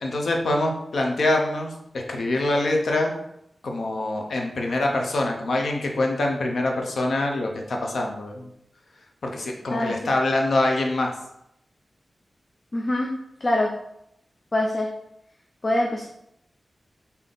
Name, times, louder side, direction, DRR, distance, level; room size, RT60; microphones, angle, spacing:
voice 1, 0.0-1.7 2.1-3.1 3.6-8.5 9.2-11.1, left 2 dB, 70° left, 1 dB, 0.7 m, -24 dB
voice 2, 12.7-13.1 13.4-13.7 14.5-14.9 15.6-16.1, left 1 dB, 30° left, 0 dB, 0.4 m, -24 dB
3.5 x 2.8 x 3.8 m, 0.78 s
wide cardioid pair, 155°, 0 cm